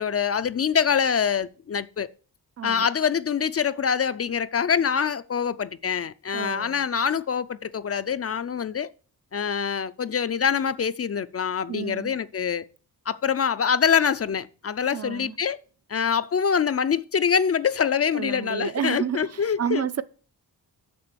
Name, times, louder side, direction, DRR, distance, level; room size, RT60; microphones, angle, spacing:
voice 1, 0.0-2.1 2.6-8.9 9.3-12.6 13.1-15.6 15.9-19.9, left 7 dB, 40° left, 0.4 m, -25 dB
voice 2, 2.6-2.9 6.3-6.8 11.7-12.1 14.9-15.4 18.1-20.0, right 8 dB, 45° right, 0.5 m, -30 dB
6.9 x 6.7 x 6.8 m
wide cardioid pair, 145°, 38 cm